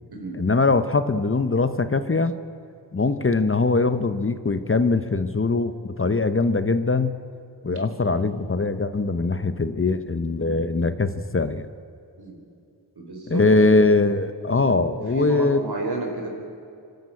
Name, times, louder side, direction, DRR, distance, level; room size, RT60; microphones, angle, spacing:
voice 1, 0.3-2.4 2.9-7.1 7.6-11.7 13.3-15.6, left 3 dB, 30° left, 11 dB, 1.0 m, -22 dB
voice 2, 13.0-13.7 14.6-14.8 15.1-16.3, right 3 dB, 65° right, 2 dB, 4.4 m, -31 dB
25.0 x 12.0 x 8.6 m, 2.5 s
cardioid pair, 50°, 42 cm